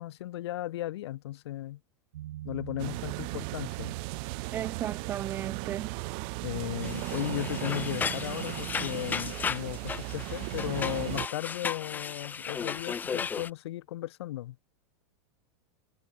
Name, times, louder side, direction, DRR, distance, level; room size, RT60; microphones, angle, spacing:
voice 1, 0.0-1.8 2.4-4.0 6.4-14.6, left 15 dB, 70° left, 4.0 m, -36 dB
sound 1, 2.1-10.4, right 14 dB, 75° right, 5.6 m, -44 dB
sound 2, 2.8-11.3, right 34 dB, 35° right, 1.4 m, -37 dB
voice 2, 4.5-5.9, right 11 dB, 15° right, 0.3 m, -35 dB
sound 3, 6.8-13.5, left 6 dB, 10° left, 4.2 m, -35 dB
supercardioid pair, 180°, 14 cm